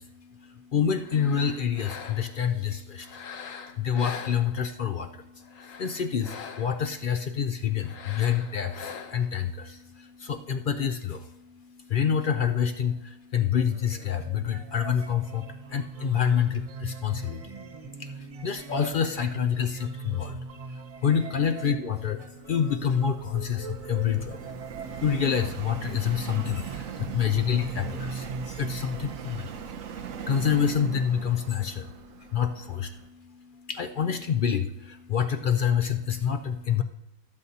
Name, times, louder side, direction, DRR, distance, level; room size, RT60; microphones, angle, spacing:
voice 1, 0.0-36.8, left 8 dB, 60° left, 8 dB, 0.5 m, -28 dB
sound 1, 1.0-2.5 3.0-4.9 5.4-6.9 7.8-9.4, left 6 dB, 85° left, 1.2 m, -42 dB
sound 2, 13.6-29.5, right 4 dB, 50° right, 0.4 m, -41 dB
Subway metro underground, 21.8-33.1, right 8 dB, 90° right, 1.1 m, -40 dB
18.0 x 8.0 x 2.8 m, 0.87 s
omnidirectional pair, 1.4 m